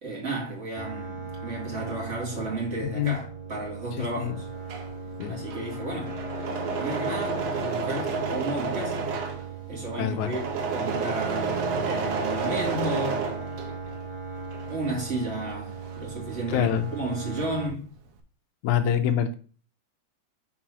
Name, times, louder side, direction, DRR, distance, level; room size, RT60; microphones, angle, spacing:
voice 1, 0.0-4.5 5.3-6.2 6.7-9.0 9.7-13.3 14.7-17.9, right 2 dB, 25° right, 2.2 m, -33 dB
sound 1, 0.8-17.7, right 4 dB, 20° left, 2.7 m, -38 dB
voice 2, 2.8-3.2 4.0-4.4 5.2-5.4 10.0-10.3 16.5-16.9 18.6-19.3, left 9 dB, 80° left, 1.7 m, -25 dB
Engine / Mechanisms, 4.4-14.0 14.4-16.7 17.0-17.7, right 4 dB, 75° right, 1.5 m, -31 dB
6.1 x 4.0 x 6.0 m
omnidirectional pair, 4.2 m